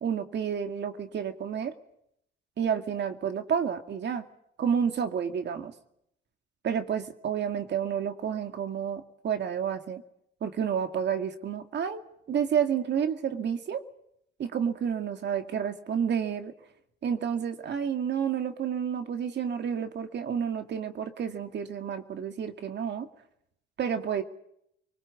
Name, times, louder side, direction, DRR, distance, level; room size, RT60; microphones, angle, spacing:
voice 1, 0.0-1.7 2.6-4.2 4.6-5.7 6.6-10.0 10.4-13.8 14.4-16.5 17.0-23.1 23.8-24.2, right 8 dB, 60° right, 7 dB, 2.2 m, -30 dB
26.0 x 19.5 x 8.4 m, 0.75 s
cardioid pair, 90°, 20 cm